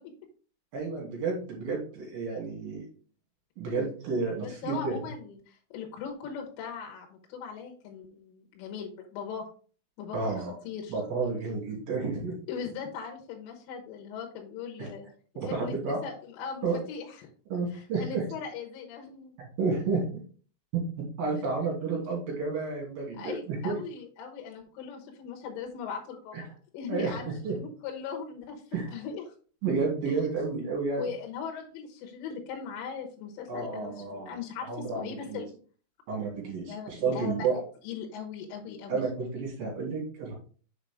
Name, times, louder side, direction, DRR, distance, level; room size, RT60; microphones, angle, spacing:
voice 1, 0.7-2.8 3.6-5.0 10.1-10.5 10.9-12.3 14.8-14.9 15.4-16.0 16.6-16.8 17.5-18.2 19.4-20.2 20.7-23.8 26.3-26.4 26.9-27.6 28.7-28.9 29.6-31.1 33.5-34.4 34.7-35.4 36.1-37.6 38.9-40.3, right 4 dB, 50° right, -2 dB, 3.9 m, -31 dB
voice 2, 4.4-9.5 10.0-10.4 10.6-11.0 12.5-15.1 15.5-17.3 17.7-19.3 23.2-26.5 26.7-28.6 28.9-29.3 30.1-30.2 31.0-34.7 35.0-35.5 36.6-39.0, left 6 dB, 75° left, 1 dB, 3.6 m, -39 dB
7.6 x 4.9 x 3.6 m, 0.41 s
omnidirectional pair, 6.0 m